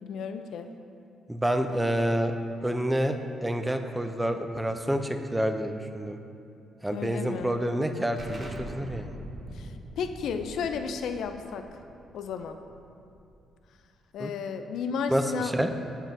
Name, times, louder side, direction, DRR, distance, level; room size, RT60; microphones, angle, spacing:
voice 1, 0.0-0.7 6.9-7.6 9.5-11.7 12.1-12.6 14.1-15.5, left 6 dB, 75° left, 7 dB, 0.4 m, -33 dB
voice 2, 1.3-2.4 2.6-6.2 6.8-9.1 14.2-14.3 15.1-15.7, equal, 10° right, 6 dB, 0.4 m, -28 dB
Explosion, 8.2-13.6, right 1 dB, 40° right, 0.8 m, -43 dB
7.2 x 7.2 x 2.6 m, 2.5 s
cardioid pair, 90°, 0 cm